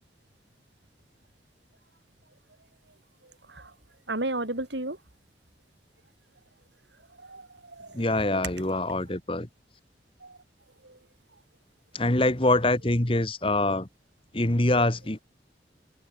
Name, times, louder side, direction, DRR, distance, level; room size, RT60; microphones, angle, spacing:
voice 1, 3.2-3.7 4.1-5.0 7.2-8.0 10.2-10.4 10.8-11.0, right 2 dB, 75° right, 5.8 m, -34 dB
voice 2, 7.9-9.5 11.9-13.9 14.3-15.2, left 2 dB, 30° left, 1.8 m, -24 dB
open air
head